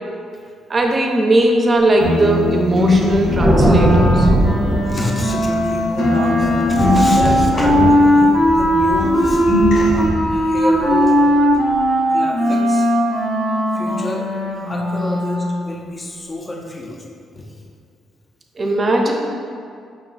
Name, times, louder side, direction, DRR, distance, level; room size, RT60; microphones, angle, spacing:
voice 1, 0.7-4.3 18.6-19.1, right 2 dB, 35° right, 2 dB, 0.6 m, -18 dB
sound 1, 2.0-5.7 6.0-8.7 9.0-10.0, left 2 dB, 90° left, 1.2 m, -22 dB
Thunder, 2.8-5.9 6.4-11.7, right 1 dB, 10° right, 0.9 m, -20 dB
Wind instrument woodwind instrument, 3.6-15.7, equal, 55° left, 0.9 m, -18 dB
voice 2, 4.8-9.4 9.7-11.2 11.9-12.9 13.7-14.2 14.7-17.1 17.3-17.5 18.6-18.7, left 1 dB, 25° left, 0 dB, 0.5 m, -28 dB
5.0 x 2.3 x 3.9 m, 2.2 s
cardioid pair, 90°, 0 cm